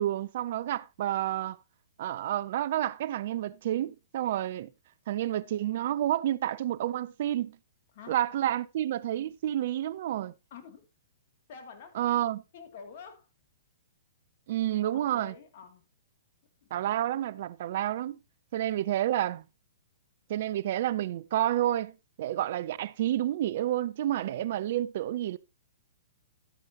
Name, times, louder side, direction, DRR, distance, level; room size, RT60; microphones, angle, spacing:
voice 1, 0.0-1.6 2.0-4.7 5.1-7.6 8.1-10.3 11.9-12.4 14.5-15.3 16.7-18.2 18.5-19.4 20.3-25.4, right 12 dB, 55° right, 0.5 m, -29 dB
voice 2, 10.5-10.8 11.5-12.0 12.5-13.3 14.9-15.8 16.6-16.7 24.2-24.7, left 6 dB, 50° left, 2.6 m, -48 dB
12.0 x 9.7 x 2.9 m
hypercardioid pair, 120°, 0 cm